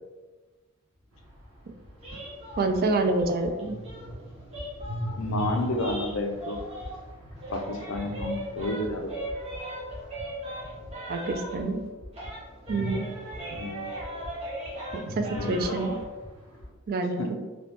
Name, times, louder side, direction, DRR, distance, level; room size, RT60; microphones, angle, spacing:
sound 1, 0.9-9.0 9.2-16.7, left 1 dB, 5° left, 1.0 m, -46 dB
sound 2, 1.1-11.4 12.7-14.6 14.9-16.6, equal, 80° right, 1.2 m, -40 dB
sound 3, 2.0-7.1 7.4-11.9 12.1-16.0, right 1 dB, 30° right, 1.0 m, -39 dB
voice 1, 2.6-3.8 11.1-11.8 12.7-13.1 15.1-16.0 16.9-17.4, right 3 dB, 45° right, 5 dB, 0.3 m, -27 dB
voice 2, 5.2-6.6 7.5-9.1 13.5-13.9 15.3-15.8 17.2-17.3, left 2 dB, 65° left, 3 dB, 0.5 m, -31 dB
3.0 x 2.9 x 3.2 m, 1.2 s
head